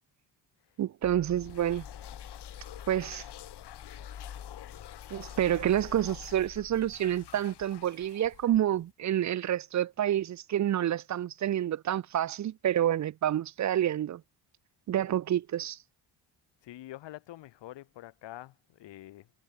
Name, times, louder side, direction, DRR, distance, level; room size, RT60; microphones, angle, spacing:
voice 1, 0.8-1.8 2.9-3.2 5.1-14.2 14.9-15.8, right 11 dB, 40° right, 0.6 m, -28 dB
sound 1, 1.0-7.0, left 9 dB, 45° left, 7.1 m, -47 dB
sound 2, 1.3-8.9, left 13 dB, 65° left, 4.0 m, -50 dB
voice 2, 16.6-19.3, left 15 dB, 90° left, 2.5 m, -46 dB
cardioid pair, 170°, 42 cm